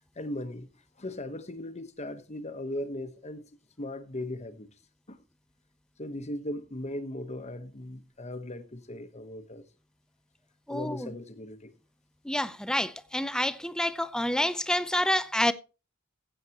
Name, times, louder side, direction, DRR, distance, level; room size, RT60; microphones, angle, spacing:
voice 1, 0.2-0.7 1.0-3.5 3.8-4.7 5.1-5.2 6.0-9.6 10.7-11.7, left 1 dB, 35° left, 1.1 m, -38 dB
voice 2, 10.7-11.1 12.2-15.5, left 1 dB, 5° left, 0.6 m, -28 dB
15.5 x 8.3 x 3.0 m
head